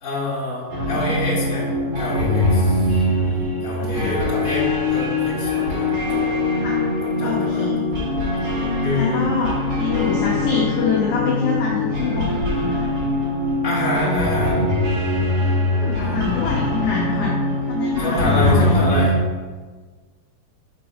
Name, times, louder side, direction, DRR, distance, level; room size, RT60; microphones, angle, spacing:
voice 1, 0.0-1.7 2.0-3.0 3.6-6.3 6.9-7.7 8.8-9.3 10.1-10.2 13.6-14.7 16.0-16.2 18.0-19.1, equal, 20° left, -8 dB, 1.7 m, -26 dB
sound 1, 0.7-19.2, left 2 dB, 50° right, 2.9 m, -22 dB
voice 2, 3.8-4.1 6.6-6.8 7.2-7.9 8.4-12.9 13.7-13.8 14.0-14.7 15.7-17.4 17.6-18.8, left 6 dB, 70° left, -4 dB, 1.9 m, -26 dB
5.9 x 4.5 x 6.3 m, 1.4 s
omnidirectional pair, 4.4 m